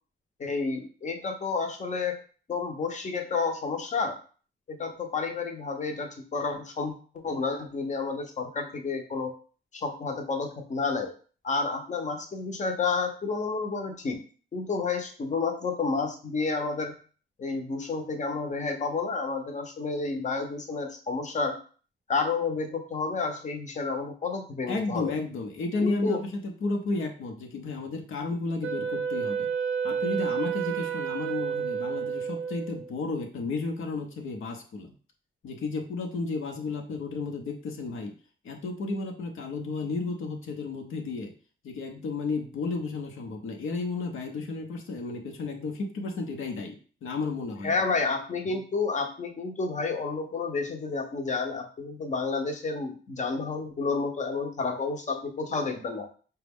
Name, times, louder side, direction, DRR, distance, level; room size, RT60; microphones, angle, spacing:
voice 1, 0.4-2.2 2.5-4.2 4.7-7.0 7.2-9.3 9.7-11.1 11.4-14.2 14.5-16.9 17.4-21.6 22.1-25.1 25.8-26.2 47.6-56.1, left 4 dB, 35° left, 5 dB, 0.7 m, -30 dB
voice 2, 24.7-29.5 29.8-34.9 35.4-38.1 38.4-41.3 41.6-47.7, left 3 dB, 85° left, 3 dB, 0.8 m, -33 dB
Wind instrument woodwind instrument, 28.6-32.9, right 7 dB, 70° right, 0.4 m, -30 dB
5.0 x 2.2 x 3.5 m, 0.40 s
wide cardioid pair, 160°, 20 cm